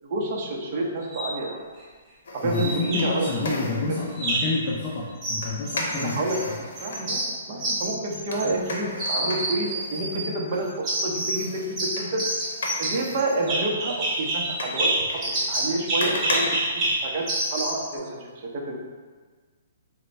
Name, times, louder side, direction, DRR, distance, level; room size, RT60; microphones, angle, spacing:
voice 1, 0.0-1.7 2.3-3.5 3.9-4.0 5.9-6.4 6.8-12.3 12.8-18.8, right 2 dB, 40° right, -1 dB, 0.7 m, -29 dB
sound 1, 1.0-1.3 2.5-3.3 4.1-4.6 5.2-6.4 6.7-8.7 9.0-10.3 10.8-11.5 11.8-17.9, right 1 dB, 15° right, 1.0 m, -28 dB
sound 2, 2.2-4.1 5.4-7.1 8.3-10.8 11.3-17.5 17.9-18.0, left 2 dB, 75° left, 0.7 m, -35 dB
voice 2, 2.4-6.3, left 3 dB, 30° left, -4 dB, 0.5 m, -28 dB
4.3 x 2.2 x 4.0 m, 1.5 s
hypercardioid pair, 160°, 0 cm